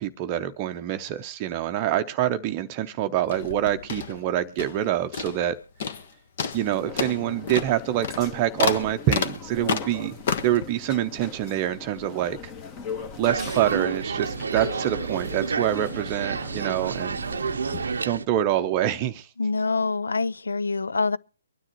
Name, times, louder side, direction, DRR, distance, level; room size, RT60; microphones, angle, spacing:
voice 1, 0.0-5.6 6.5-10.1 10.4-12.4 13.2-17.2 18.0-19.3, right 12 dB, 30° right, 0.7 m, -26 dB
sound 1, 3.2-4.9 5.1-5.5 5.8-6.1 6.4-10.6, left 6 dB, 50° left, 1.2 m, -30 dB
sound 2, 6.5-18.0, left 5 dB, 25° left, 1.3 m, -40 dB
sound 3, 13.3-18.3, right 5 dB, 70° right, 0.6 m, -30 dB
voice 2, 19.4-21.2, left 4 dB, 80° left, 0.5 m, -25 dB
24.0 x 9.9 x 3.0 m
hypercardioid pair, 140°, 0 cm